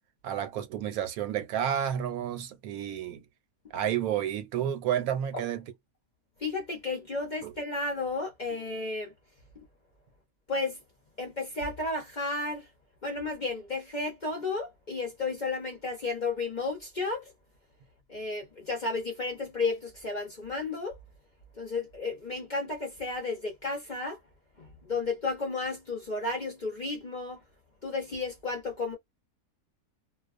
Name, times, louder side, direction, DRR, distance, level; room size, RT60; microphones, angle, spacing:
voice 1, 0.2-3.2 3.7-5.6 7.4-7.5, right 10 dB, 80° right, 1.0 m, -30 dB
voice 2, 6.4-9.1 10.5-10.8 11.2-12.7 13.0-17.2 18.1-21.0 21.6-24.2 24.6-27.4 27.8-29.0, left 3 dB, 45° left, 0.6 m, -33 dB
2.4 x 2.2 x 2.4 m
omnidirectional pair, 1.5 m